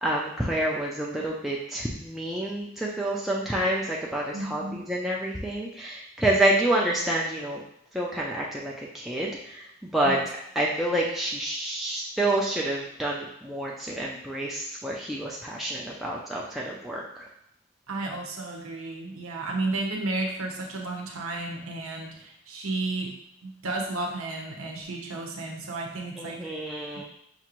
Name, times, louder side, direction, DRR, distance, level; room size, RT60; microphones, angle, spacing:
voice 1, 0.0-7.6 7.9-9.6 9.9-10.2 10.6-17.0 26.2-27.0, right 1 dB, ahead, -4 dB, 0.3 m, -28 dB
voice 2, 4.3-4.8 10.0-10.2 17.9-23.1 23.4-26.4, right 2 dB, 85° right, 1 dB, 0.8 m, -32 dB
5.7 x 2.5 x 2.9 m, 0.78 s
head